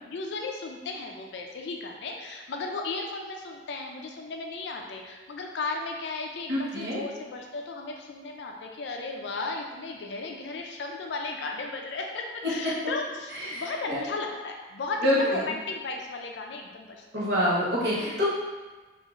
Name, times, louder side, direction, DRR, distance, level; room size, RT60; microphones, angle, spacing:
voice 1, 0.0-17.2, left 3 dB, 70° left, 2 dB, 0.4 m, -35 dB
voice 2, 6.5-7.0 13.4-14.0 15.0-15.4 17.1-18.2, equal, 60° right, -8 dB, 0.9 m, -26 dB
3.0 x 2.4 x 2.4 m, 1.3 s
head